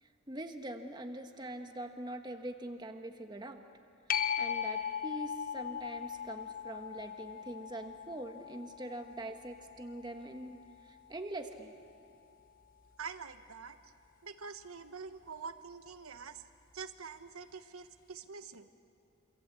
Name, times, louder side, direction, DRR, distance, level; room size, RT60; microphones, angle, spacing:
voice 1, 0.0-3.6 4.4-11.7, right 1 dB, 20° right, 6 dB, 1.4 m, -43 dB
sound 1, 4.1-11.3 16.8-16.9, left 8 dB, 40° left, 1.0 m, -39 dB
voice 2, 13.0-13.8 14.2-16.5 16.7-18.7, right 5 dB, 80° right, 9 dB, 1.2 m, -45 dB
27.5 x 26.0 x 8.3 m, 2.7 s
head